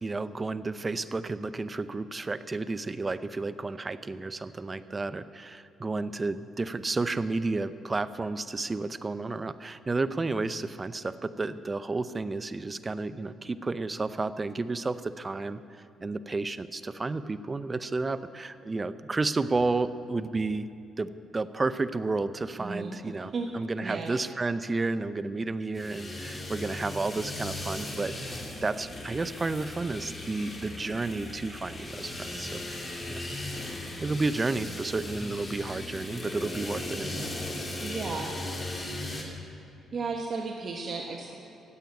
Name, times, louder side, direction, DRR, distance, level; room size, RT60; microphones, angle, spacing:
voice 1, 0.0-20.7 21.0-33.2 34.0-37.3, right 3 dB, 25° right, 14 dB, 0.6 m, -32 dB
voice 2, 22.6-23.5 23.8-24.1 37.8-38.3 39.9-41.4, right 4 dB, 50° right, 0 dB, 1.4 m, -34 dB
sound 1, 25.7-39.2, left 1 dB, 30° left, 2.9 m, -37 dB
15.0 x 8.6 x 9.4 m, 2.7 s
cardioid pair, 90°, 0 cm